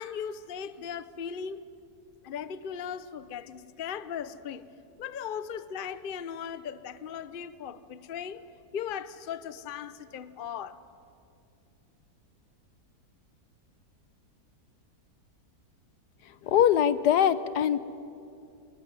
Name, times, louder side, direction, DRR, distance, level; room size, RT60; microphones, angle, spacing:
voice 1, 0.0-1.6 2.2-4.6 5.0-8.5 8.7-10.8, left 8 dB, 45° left, 0.7 m, -38 dB
voice 2, 16.4-17.8, left 9 dB, 75° left, 1.4 m, -22 dB
26.5 x 21.0 x 9.6 m
omnidirectional pair, 1.8 m